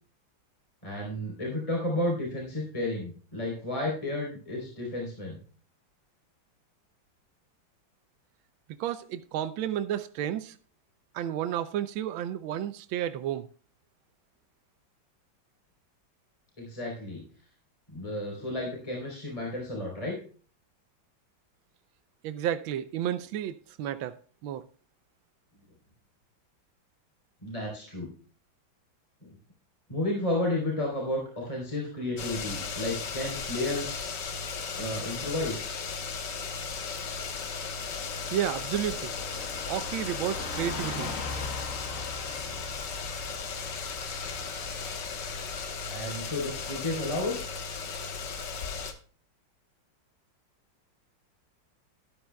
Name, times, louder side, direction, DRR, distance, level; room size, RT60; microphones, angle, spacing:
voice 1, 0.8-5.4 16.6-17.3 17.9-20.2 27.4-28.1 29.2-29.3 29.9-34.1 34.8-35.7 45.9-47.3, left 1 dB, 15° left, 3.5 m, -32 dB
voice 2, 8.8-10.6 11.1-13.5 22.2-24.2 24.4-24.6 38.3-39.1 39.7-41.1, right 10 dB, 85° right, 1.4 m, -31 dB
sound 1, 32.2-48.9, left 5 dB, 65° left, 1.8 m, -36 dB
Car passing by / Truck, 33.8-46.8, left 3 dB, 45° left, 1.5 m, -43 dB
13.0 x 12.0 x 2.2 m
omnidirectional pair, 2.1 m